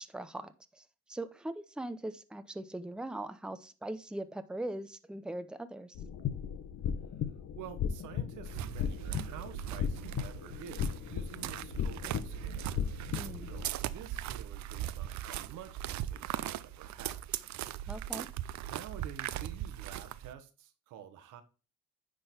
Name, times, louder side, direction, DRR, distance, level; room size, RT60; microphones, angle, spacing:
voice 1, 0.0-6.0 13.1-13.5 17.9-18.3, right 1 dB, 5° right, 0.6 m, -41 dB
sound 1, 5.9-13.6, left 8 dB, 65° left, 1.1 m, -36 dB
voice 2, 7.6-12.8 13.5-17.4 18.6-21.4, right 9 dB, 90° right, 1.2 m, -49 dB
sound 2, 8.5-20.3, right 12 dB, 70° right, 0.5 m, -39 dB
9.7 x 3.8 x 4.3 m
cardioid pair, 90°, 30 cm